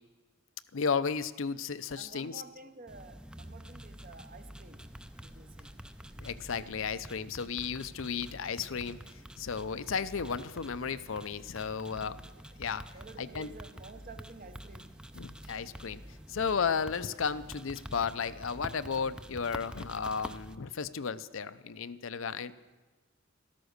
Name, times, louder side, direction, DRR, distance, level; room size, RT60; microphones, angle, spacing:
voice 1, 0.7-2.4 6.2-12.2 12.6-12.8 13.2-13.5 15.1-22.6, left 6 dB, 65° left, 14 dB, 0.6 m, -34 dB
voice 2, 2.0-4.9 5.2-5.7 11.9-15.0, right 3 dB, 40° right, 10 dB, 0.9 m, -51 dB
sound 1, 2.9-20.5, equal, 5° right, 0.5 m, -47 dB
14.0 x 13.0 x 6.6 m, 1.3 s
head